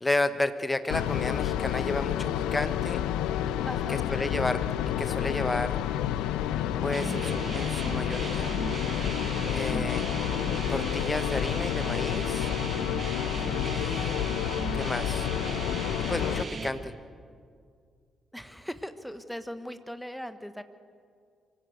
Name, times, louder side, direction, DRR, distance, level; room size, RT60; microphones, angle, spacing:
voice 1, 0.0-3.0 3.9-4.6 5.0-5.8 6.8-8.5 9.5-10.1 10.7-12.5 13.6-14.2 14.7-15.3 16.1-16.9, left 2 dB, 20° left, 12 dB, 1.2 m, -32 dB
sound 1, 0.9-16.4, left 11 dB, 65° left, 0.6 m, -29 dB
voice 2, 3.7-4.1 13.5-13.7 18.3-20.6, equal, ahead, 11 dB, 1.3 m, -39 dB
sound 2, 6.9-16.7, right 4 dB, 40° right, 1.4 m, -37 dB
24.0 x 16.0 x 8.2 m, 2.2 s
figure-of-eight pair, 40°, 0 cm